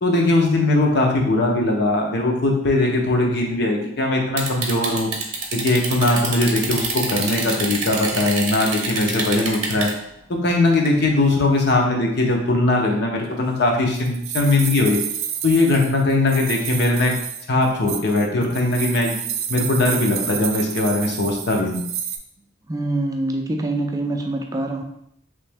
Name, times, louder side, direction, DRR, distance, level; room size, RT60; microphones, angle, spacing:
voice 1, 0.0-5.1 5.5-9.9 10.3-15.0 15.4-17.1 17.5-19.2 19.5-21.8, left 2 dB, 55° left, 0 dB, 0.7 m, -20 dB
sound 1, 4.4-9.9 10.9-11.0, right 4 dB, 35° right, 0.8 m, -26 dB
sound 2, 13.3-22.2, right 8 dB, 90° right, 0.4 m, -30 dB
voice 2, 22.7-24.8, right 2 dB, 20° right, 3 dB, 0.4 m, -25 dB
3.3 x 3.0 x 3.4 m, 0.74 s
head